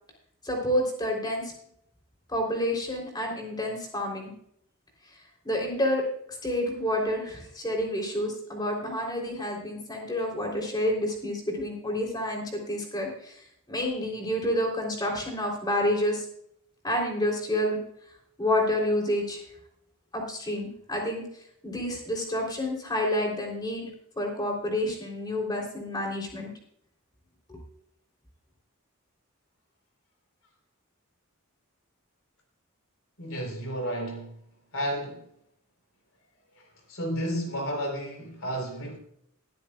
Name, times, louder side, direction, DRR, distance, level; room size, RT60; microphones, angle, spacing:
voice 1, 0.4-1.5 2.3-4.3 5.4-6.1 6.4-16.3 16.8-17.8 18.4-19.4 20.1-21.3 21.6-23.9 24.2-26.5 27.5-27.6, left 1 dB, 20° left, 3.6 m, -29 dB
voice 2, 33.2-34.4 34.7-35.3 36.6-39.0, equal, 70° left, 4.0 m, -32 dB
20.5 x 9.6 x 2.4 m
head